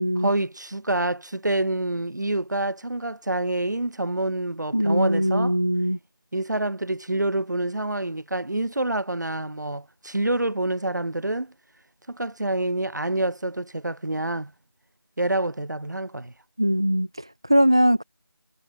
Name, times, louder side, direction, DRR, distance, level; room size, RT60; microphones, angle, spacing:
voice 1, 0.2-5.6 6.3-11.5 12.1-14.5 15.2-16.3, right 1 dB, 50° right, 5.8 m, -27 dB
voice 2, 4.7-6.0 16.6-18.0, equal, 10° right, 0.7 m, -21 dB
figure-of-eight pair, 170°, 12 cm